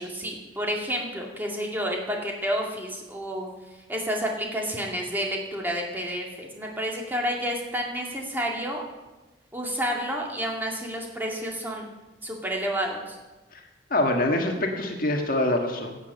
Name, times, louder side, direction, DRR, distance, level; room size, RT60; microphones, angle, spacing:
voice 1, 0.0-3.5 3.9-8.8 9.5-11.9 12.2-13.2, equal, 10° right, -1 dB, 2.3 m, -30 dB
voice 2, 13.9-16.0, left 1 dB, 45° left, 2 dB, 1.6 m, -25 dB
16.5 x 8.4 x 6.8 m, 1.1 s
head